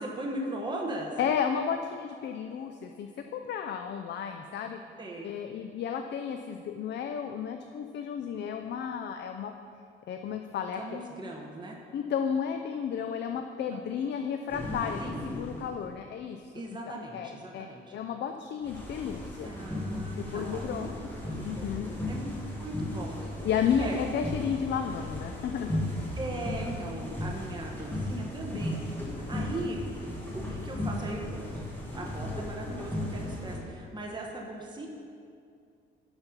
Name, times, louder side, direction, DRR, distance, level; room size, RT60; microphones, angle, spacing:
voice 1, 0.0-1.2 5.0-5.3 10.8-11.8 13.7-13.8 15.0-15.2 16.5-17.9 19.4-20.9 21.3-23.4 23.7-24.0 26.1-28.8 29.3-29.8 30.3-31.7 31.9-34.9, right 1 dB, 20° right, -1 dB, 1.1 m, -38 dB
voice 2, 1.2-4.8 5.2-9.5 10.1-11.0 11.9-15.0 15.3-16.5 17.1-17.7 17.9-19.5 20.3-20.9 21.4-21.9 23.4-25.9, left 7 dB, 60° left, 5 dB, 0.5 m, -32 dB
sound 1, 14.5-15.8 18.6-33.6, left 1 dB, 10° left, 2.0 m, -36 dB
11.5 x 4.4 x 5.3 m, 2.4 s
cardioid pair, 90°, 20 cm